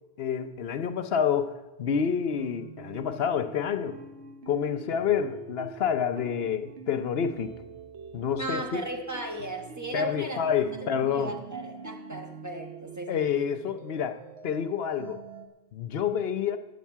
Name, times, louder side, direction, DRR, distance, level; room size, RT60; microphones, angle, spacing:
voice 1, 0.2-4.0 4.5-7.5 8.1-8.8 9.9-11.4 13.1-15.2 15.7-16.6, left 7 dB, 70° left, 10 dB, 0.9 m, -28 dB
sound 1, 2.4-15.5, right 5 dB, 85° right, 1.3 m, -45 dB
voice 2, 8.4-10.4 10.8-13.2, right 2 dB, 15° right, 3 dB, 1.2 m, -36 dB
14.5 x 9.3 x 4.6 m, 1.1 s
omnidirectional pair, 1.1 m